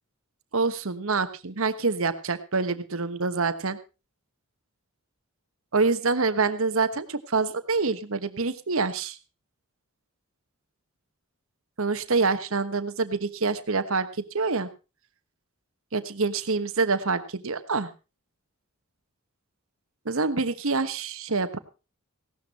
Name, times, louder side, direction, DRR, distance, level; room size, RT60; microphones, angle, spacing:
voice 1, 0.5-3.8 5.7-9.2 11.8-14.7 15.9-17.9 20.0-21.6, right 4 dB, 65° right, 11 dB, 1.2 m, -26 dB
16.5 x 12.5 x 4.2 m, 0.30 s
head